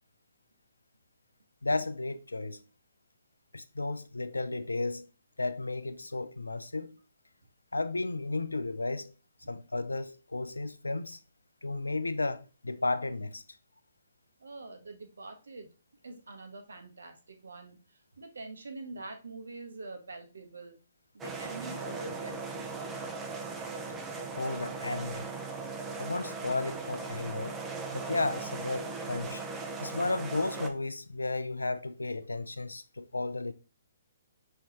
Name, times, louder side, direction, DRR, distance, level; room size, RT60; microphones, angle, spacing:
voice 1, 1.6-2.6 3.5-5.1 5.4-7.0 7.7-9.1 9.5-11.2 11.6-13.4 24.4-25.3 26.0-27.6 27.9-29.4 29.8-33.5, left 2 dB, 85° left, 0.5 m, -33 dB
voice 2, 14.4-15.7 16.0-20.8 21.1-22.7, right 3 dB, 75° right, 1.1 m, -45 dB
sound 1, 21.2-30.7, right 4 dB, 15° right, 0.6 m, -38 dB
5.6 x 3.1 x 2.9 m
figure-of-eight pair, 130°, 0 cm